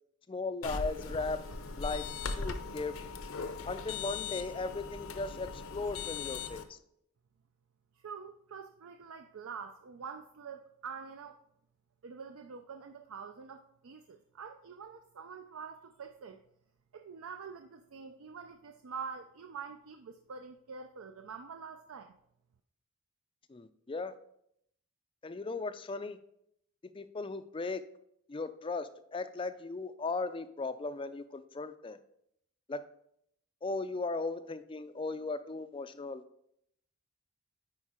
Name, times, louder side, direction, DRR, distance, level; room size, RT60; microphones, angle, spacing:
voice 1, 0.3-1.4 1.8-2.0 2.3-3.0 3.7-6.8 23.5-24.1 25.2-26.2 26.9-27.8 28.3-32.0 32.7-32.8 33.6-36.2, left 3 dB, 25° left, 11 dB, 0.3 m, -37 dB
sound 1, 0.6-6.6, left 4 dB, 70° left, 0.6 m, -39 dB
voice 2, 8.0-11.4 12.0-16.4 16.9-22.2, right 6 dB, 70° right, 6 dB, 0.4 m, -46 dB
9.5 x 4.5 x 4.3 m, 0.74 s
head